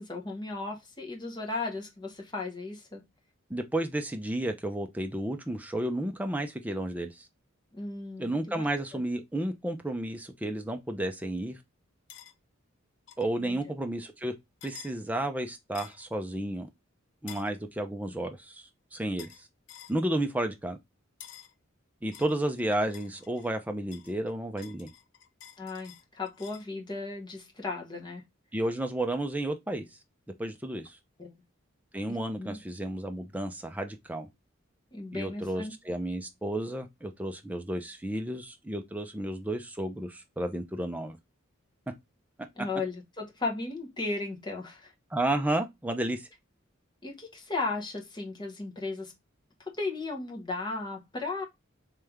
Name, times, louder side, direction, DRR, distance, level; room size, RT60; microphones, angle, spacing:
voice 1, 0.0-3.0 7.7-8.6 13.4-13.6 18.1-18.2 25.6-28.2 31.2-31.3 32.1-32.6 34.9-35.7 42.6-44.9 47.0-49.1 49.7-51.4, left 3 dB, 20° left, 1.0 m, -36 dB
voice 2, 3.5-7.3 8.2-11.6 13.2-14.3 14.6-16.7 17.2-19.5 19.9-20.8 22.0-24.9 28.5-29.9 30.4-31.0 31.9-34.3 35.1-41.2 45.1-46.3, right 1 dB, 5° right, 0.5 m, -32 dB
sound 1, 12.1-12.3 13.1-13.3 14.6-14.9 15.8-16.1 17.3-17.5 19.2-19.4 19.7-20.0 21.2-21.5 22.1-23.5 23.9-26.7, left 10 dB, 65° left, 0.5 m, -49 dB
3.3 x 3.2 x 3.5 m
head